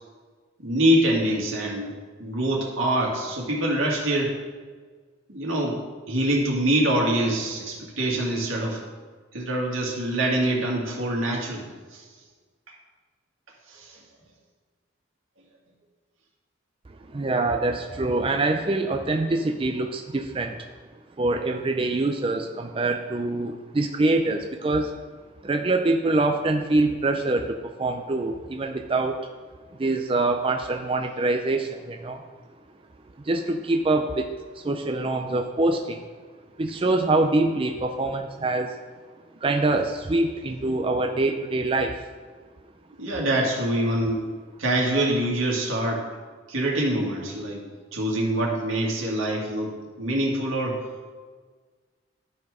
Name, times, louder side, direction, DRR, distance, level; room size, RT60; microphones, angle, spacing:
voice 1, 0.6-1.9 2.2-4.3 5.3-5.8 6.1-8.8 9.3-11.6 11.9-12.0 13.7-14.0 43.0-44.3 44.6-46.0 46.5-47.6 47.9-50.8, right 1 dB, 90° right, -2 dB, 2.1 m, -25 dB
voice 2, 17.1-20.7 21.2-25.0 25.4-29.3 29.8-32.2 33.2-36.1 36.6-38.8 39.4-42.0, right 2 dB, 25° right, 4 dB, 0.4 m, -25 dB
12.0 x 4.4 x 4.8 m, 1.5 s
head